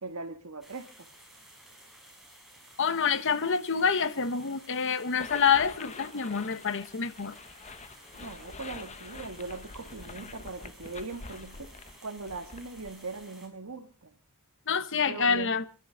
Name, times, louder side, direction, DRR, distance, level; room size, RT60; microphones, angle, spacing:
voice 1, 0.0-1.1 8.1-11.7 12.0-14.2 15.0-15.6, right 3 dB, 70° right, 1.6 m, -40 dB
sound 1, 0.6-13.5, right 1 dB, ahead, 5.7 m, -54 dB
voice 2, 2.8-7.3 14.7-15.7, left 6 dB, 60° left, 1.1 m, -27 dB
sound 2, 5.2-13.3, left 4 dB, 30° left, 0.9 m, -46 dB
29.0 x 11.0 x 3.9 m
head